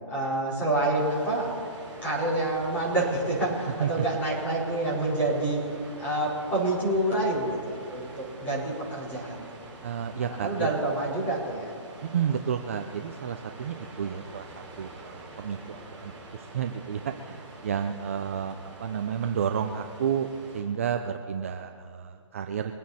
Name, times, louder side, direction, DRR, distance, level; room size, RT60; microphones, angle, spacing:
voice 1, 0.1-1.5 2.0-5.6 6.0-9.4 10.2-11.7, right 1 dB, 10° left, -7 dB, 4.3 m, -27 dB
sound 1, 0.9-20.6, right 2 dB, 5° right, 4.1 m, -46 dB
voice 2, 9.8-10.7 12.0-20.3 20.5-22.7, right 8 dB, 25° right, 6 dB, 0.5 m, -31 dB
23.5 x 9.3 x 4.3 m, 2.3 s
hypercardioid pair, 165°, 16 cm